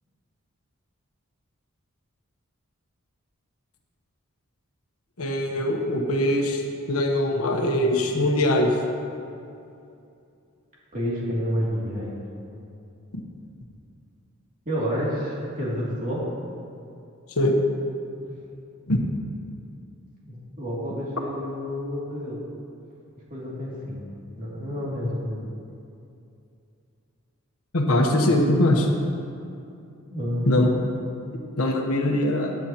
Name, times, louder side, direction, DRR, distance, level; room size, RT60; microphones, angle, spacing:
voice 1, 5.2-6.6 6.9-8.8 13.1-13.2 17.3-17.6 18.9-19.0 27.7-28.9 30.5-30.7 31.3-32.6, left 1 dB, 85° left, 2 dB, 1.1 m, -22 dB
voice 2, 10.9-12.2 14.7-16.3 18.2-18.4 20.3-22.4 23.3-24.0 24.4-25.4 30.1-30.8, equal, 40° right, -6 dB, 2.7 m, -29 dB
15.5 x 9.4 x 3.0 m, 2.6 s
head